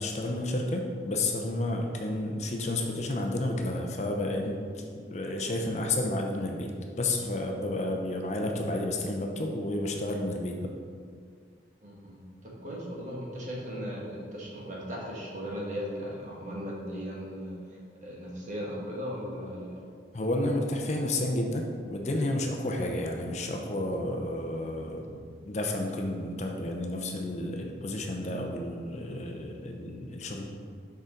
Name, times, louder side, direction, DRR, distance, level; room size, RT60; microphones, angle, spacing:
voice 1, 0.0-4.8 5.1-10.7 20.1-30.4, left 1 dB, 40° left, 2 dB, 0.6 m, -31 dB
voice 2, 11.8-19.8, equal, 45° right, -4 dB, 1.4 m, -37 dB
6.6 x 5.0 x 3.9 m, 2.1 s
head